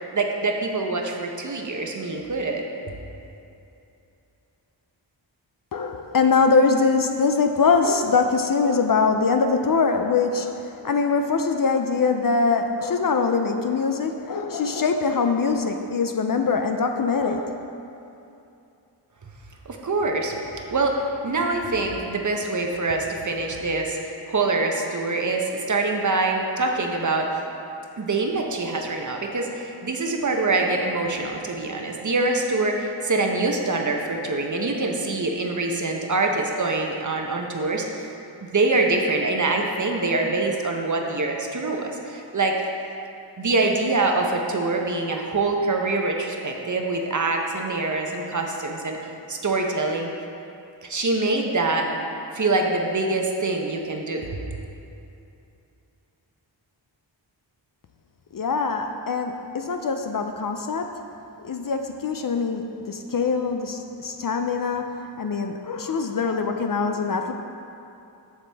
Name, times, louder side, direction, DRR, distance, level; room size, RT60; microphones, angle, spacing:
voice 1, 0.1-2.6 19.7-20.3 20.7-20.9 21.2-27.3 28.0-37.8 38.5-42.5 43.4-49.0 49.3-50.1 50.8-51.9 52.3-54.4, right 3 dB, 40° right, 2 dB, 0.8 m, -24 dB
voice 2, 5.7-17.6 58.3-60.9 61.4-67.3, left 4 dB, 50° left, 5 dB, 0.5 m, -23 dB
7.3 x 6.8 x 3.4 m, 2.7 s
wide cardioid pair, 75°, 46 cm